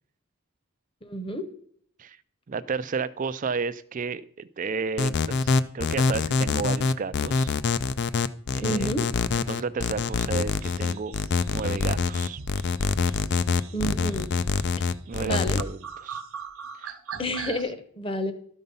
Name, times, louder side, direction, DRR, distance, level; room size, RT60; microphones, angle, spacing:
voice 1, 1.0-1.5 8.6-9.1 13.7-14.3 15.2-15.6 17.2-18.3, equal, 25° left, 9 dB, 0.9 m, -30 dB
voice 2, 2.5-7.6 8.5-8.9 9.5-11.1 11.5-12.4 15.1-16.2 16.8-17.6, right 5 dB, 35° right, 16 dB, 0.4 m, -32 dB
sound 1, 5.0-15.6, left 4 dB, 50° left, 0.4 m, -25 dB
sound 2, 10.6-17.6, right 6 dB, 75° right, 1.1 m, -42 dB
12.5 x 5.5 x 5.4 m, 0.63 s
head